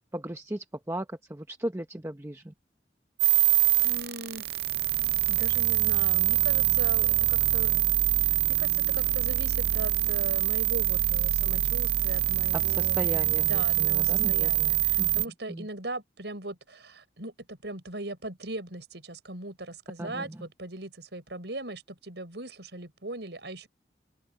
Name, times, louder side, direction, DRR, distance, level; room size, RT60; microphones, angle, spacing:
voice 1, 0.1-2.5 12.5-15.7 20.0-20.3, right 1 dB, 15° right, 0.8 m, -36 dB
sound 1, 3.2-15.2, right 14 dB, 60° right, 0.5 m, -25 dB
voice 2, 3.8-4.6 5.3-7.8 8.2-13.0 13.4-23.7, right 2 dB, 80° right, 5.7 m, -39 dB
head